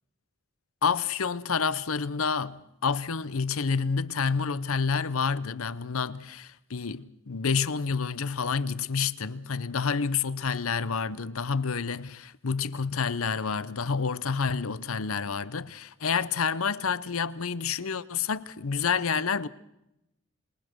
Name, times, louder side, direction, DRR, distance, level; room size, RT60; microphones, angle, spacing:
voice 1, 0.8-19.5, left 5 dB, 75° left, 0.8 m, -29 dB
26.5 x 21.5 x 6.2 m
head